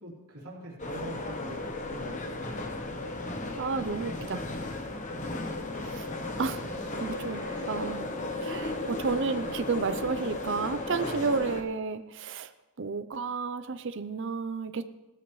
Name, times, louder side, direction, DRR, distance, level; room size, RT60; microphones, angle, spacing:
voice 1, 0.0-2.7 6.3-6.6 10.9-11.3, right 1 dB, 90° right, -5 dB, 3.1 m, -44 dB
sound 1, 0.8-11.6, left 2 dB, 35° left, 1.0 m, -35 dB
voice 2, 3.6-4.4 5.7-6.1 6.4-6.6 7.0-7.4 7.7-8.1 8.4-12.5 12.8-14.8, right 4 dB, 55° right, 10 dB, 0.6 m, -31 dB
sound 2, 3.8-4.2 5.2-7.9, right 2 dB, 15° right, 1.3 m, -54 dB
16.5 x 13.0 x 3.2 m, 1.1 s
head